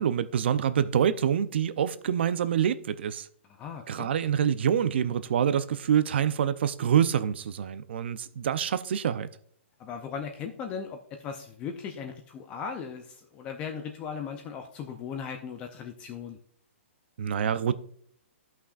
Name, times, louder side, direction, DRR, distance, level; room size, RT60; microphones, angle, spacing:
voice 1, 0.0-3.3 3.9-9.3 17.2-17.8, right 8 dB, 55° right, 0.5 m, -26 dB
voice 2, 3.6-4.1 9.8-16.4, left 6 dB, 15° left, 0.5 m, -38 dB
13.5 x 5.8 x 2.4 m
hypercardioid pair, 165°, 7 cm